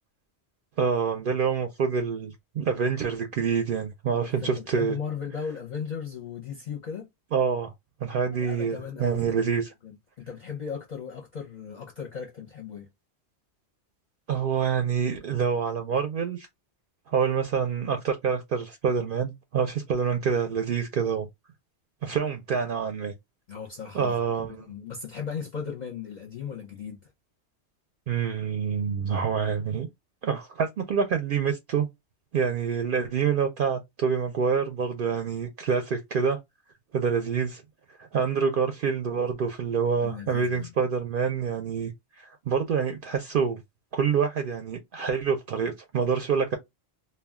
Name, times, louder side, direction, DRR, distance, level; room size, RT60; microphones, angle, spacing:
voice 1, 0.8-4.9 7.3-7.7 8.0-9.7 14.3-16.5 17.1-21.3 22.0-23.1 23.9-24.7 28.1-29.9 30.2-31.9 32.3-36.4 36.9-37.6 38.0-41.9 42.2-43.6 43.9-46.6, right 6 dB, 60° right, 0.7 m, -26 dB
voice 2, 4.2-7.1 8.4-9.4 9.8-12.9 23.5-27.1 40.0-40.7, left 6 dB, 50° left, 0.7 m, -37 dB
2.3 x 2.2 x 3.4 m
omnidirectional pair, 1.1 m